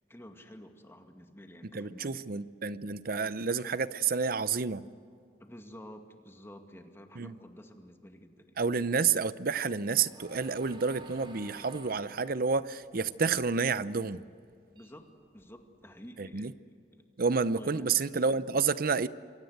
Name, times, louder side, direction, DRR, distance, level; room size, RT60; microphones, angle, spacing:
voice 1, 0.1-2.2 5.4-8.6 14.7-17.0 17.6-17.8, equal, 15° left, 2.1 m, -50 dB
voice 2, 1.7-4.8 7.2-7.3 8.6-14.2 16.2-16.5 17.2-19.1, right 5 dB, 55° right, 0.7 m, -29 dB
sound 1, 9.3-13.8 14.2-15.7, right 1 dB, 30° right, 5.3 m, -54 dB
28.0 x 23.5 x 8.1 m
head